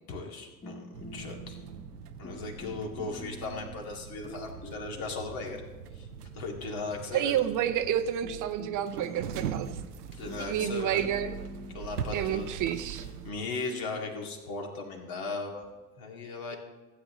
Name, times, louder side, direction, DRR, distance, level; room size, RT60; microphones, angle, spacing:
voice 1, 0.1-1.6 2.2-5.6 5.9-6.1 6.3-7.4 10.1-11.1 11.7-12.5 13.2-15.6 16.0-16.6, left 3 dB, 50° left, 1 dB, 2.2 m, -37 dB
sound 1, 0.6-3.9 4.3-6.7 7.7-7.8 8.2-15.7, left 1 dB, 25° left, 1.6 m, -46 dB
sound 2, 0.9-13.3, right 8 dB, 90° right, 0.6 m, -41 dB
voice 2, 7.1-9.8 10.5-11.3 12.1-13.1, right 10 dB, 45° right, 10 dB, 0.7 m, -29 dB
15.5 x 8.4 x 3.1 m, 1.2 s
hypercardioid pair, 70°, 45 cm